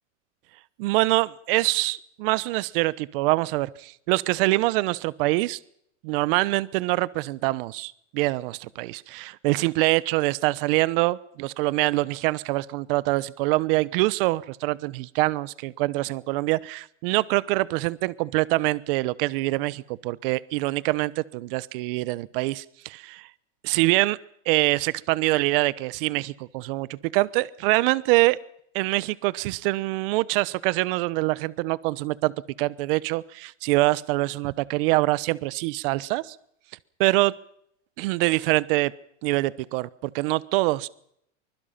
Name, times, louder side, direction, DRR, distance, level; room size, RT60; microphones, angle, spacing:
voice 1, 0.8-5.6 6.0-23.3 23.6-24.2 24.5-28.4 28.7-32.3 32.6-36.4 37.0-37.3 38.0-38.9 39.2-40.9, right 20 dB, 50° right, 19 dB, 1.0 m, -24 dB
24.5 x 21.5 x 5.8 m, 0.71 s
supercardioid pair, 150°, 36 cm